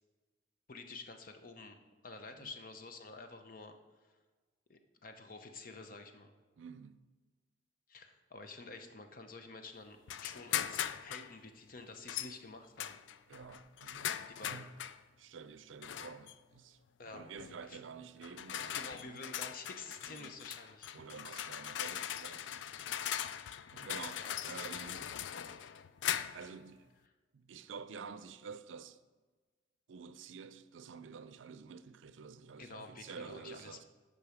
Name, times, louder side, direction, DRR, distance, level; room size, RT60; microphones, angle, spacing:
voice 1, 0.7-1.8 2.0-3.7 4.7-6.3 7.9-13.0 14.4-14.7 17.0-17.3 17.6-17.8 18.7-20.9 24.2-24.4 32.6-33.8, left 3 dB, 45° left, 0.8 m, -49 dB
voice 2, 6.6-7.1 13.3-14.7 15.2-16.8 17.1-19.2 20.0-20.4 20.9-22.7 23.7-25.2 26.3-26.9 27.3-29.0 29.9-33.8, right 5 dB, 85° right, 0.5 m, -50 dB
sound 1, 10.1-11.3 12.1-12.3 12.8-15.0 15.8-16.3 17.4-17.6 18.2-26.5, left 10 dB, 75° left, 0.4 m, -40 dB
9.7 x 5.4 x 5.0 m
head